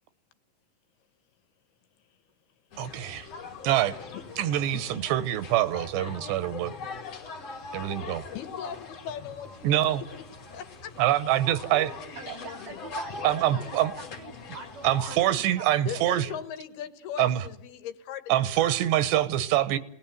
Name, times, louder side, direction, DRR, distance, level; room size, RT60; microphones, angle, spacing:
sound 1, 2.7-15.3, left 4 dB, 45° left, 3.0 m, -41 dB
voice 1, 2.8-3.3 3.6-4.0 4.4-6.7 7.7-8.2 9.6-10.0 11.0-11.9 13.2-13.9 14.8-16.3 17.2-17.4 18.3-19.8, right 13 dB, 80° right, 3.3 m, -25 dB
voice 2, 4.7-5.1 8.3-10.1 10.5-11.0 15.9-18.3 18.6-18.7, left 9 dB, 70° left, 3.1 m, -39 dB
voice 3, 12.2-16.4, right 5 dB, 65° right, 1.8 m, -45 dB
28.0 x 19.5 x 9.3 m
omnidirectional pair, 4.9 m